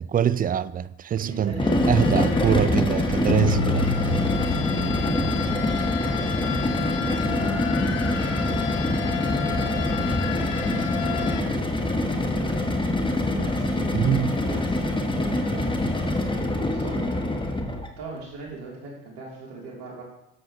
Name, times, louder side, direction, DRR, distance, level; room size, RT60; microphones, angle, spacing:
voice 1, 0.0-4.2 13.9-14.3, right 9 dB, 25° right, 0.4 m, -24 dB
voice 2, 1.2-1.9 4.1-11.9 12.1-12.5 12.9-14.1 14.4-15.8 16.4-17.0 18.0-20.0, right 3 dB, 75° right, 3.3 m, -40 dB
sound 1, 1.5-17.9, left 1 dB, 15° left, 1.3 m, -25 dB
sound 2, 1.6-11.4, left 8 dB, 85° left, 1.0 m, -31 dB
10.5 x 7.6 x 3.1 m
hypercardioid pair, 65°, 36 cm